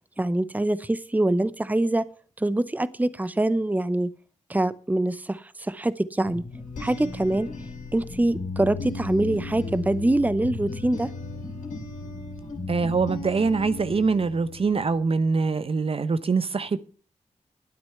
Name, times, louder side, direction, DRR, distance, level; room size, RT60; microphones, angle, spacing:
voice 1, 0.2-2.1 2.4-4.1 4.5-6.4 6.8-7.5 7.9-11.1, right 1 dB, 15° right, 0.7 m, -24 dB
sound 1, 6.3-15.0, left 3 dB, 90° left, 2.8 m, -36 dB
voice 2, 12.7-16.8, right 4 dB, 50° right, 0.8 m, -24 dB
11.5 x 9.7 x 5.7 m
cardioid pair, 60°, 13 cm